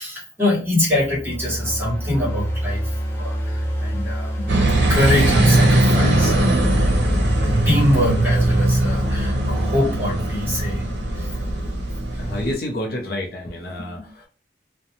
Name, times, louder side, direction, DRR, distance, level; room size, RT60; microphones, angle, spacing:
voice 1, 0.0-6.5 7.4-10.9 11.1-11.3 12.1-12.2, left 1 dB, 10° right, -6 dB, 1.2 m, -24 dB
sound 1, 0.8-11.9, equal, 15° left, 0.6 m, -27 dB
sound 2, 4.5-12.5, right 1 dB, 70° right, 0.6 m, -20 dB
voice 2, 12.2-14.3, left 1 dB, 55° left, 1 dB, 0.5 m, -29 dB
2.6 x 2.1 x 2.8 m, 0.37 s
head